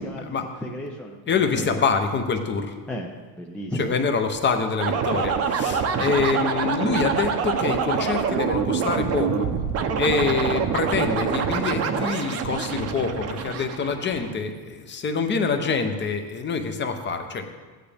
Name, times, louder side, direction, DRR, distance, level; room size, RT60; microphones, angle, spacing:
voice 1, 0.0-1.8 2.9-4.2 5.9-6.2, equal, 5° left, -1 dB, 0.5 m, -34 dB
voice 2, 1.3-2.7 3.8-9.5 10.0-17.5, left 5 dB, 25° left, 6 dB, 0.8 m, -25 dB
sound 1, 4.8-14.3, right 6 dB, 35° right, 0.8 m, -25 dB
14.5 x 9.5 x 3.4 m, 1.4 s
cardioid pair, 145°, 44 cm